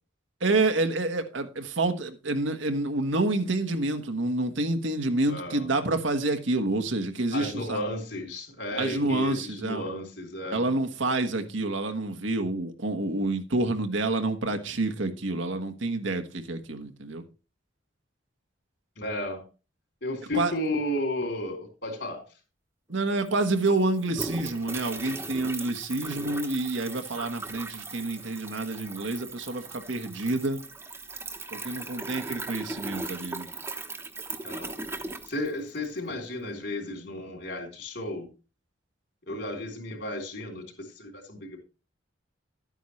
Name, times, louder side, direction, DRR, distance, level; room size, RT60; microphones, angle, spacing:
voice 1, 0.4-7.8 8.8-9.8 10.5-17.2 20.3-20.5 22.9-30.6 31.5-33.5, right 2 dB, 85° right, 1.4 m, -28 dB
voice 2, 5.3-5.7 7.3-10.7 19.0-19.4 20.0-22.2 34.4-34.7 35.3-38.3 39.3-41.6, left 1 dB, 65° left, 3.7 m, -33 dB
sound 1, 22.9-23.0 23.2-36.0, right 3 dB, 15° right, 0.9 m, -38 dB
12.0 x 9.0 x 3.2 m
head